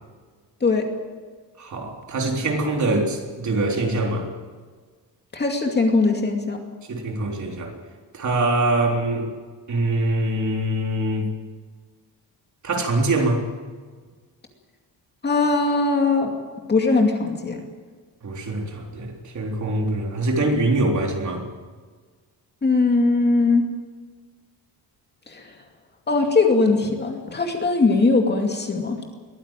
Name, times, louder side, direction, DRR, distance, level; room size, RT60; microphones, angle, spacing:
voice 1, 1.6-4.3 6.9-7.7 8.1-9.3 9.7-11.3 12.6-13.4 18.2-21.4, right 2 dB, 45° right, 1 dB, 3.7 m, -23 dB
voice 2, 5.3-6.6 15.2-16.3 16.7-17.6 22.6-23.6 25.3-25.5 26.1-29.0, left 3 dB, 25° left, 3 dB, 2.5 m, -20 dB
22.0 x 15.0 x 9.1 m, 1.5 s
cardioid pair, 170°, 41 cm